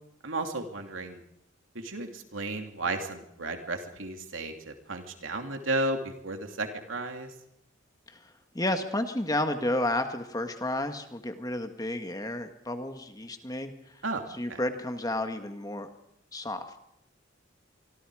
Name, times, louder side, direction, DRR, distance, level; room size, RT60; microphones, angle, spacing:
voice 1, 0.2-1.2 1.7-7.3 14.0-14.2 14.5-14.6, right 2 dB, 85° right, 4 dB, 2.9 m, -33 dB
voice 2, 8.1-14.0 14.3-15.9 16.3-16.8, left 1 dB, 20° left, 7 dB, 1.6 m, -32 dB
25.5 x 24.5 x 4.9 m, 0.79 s
head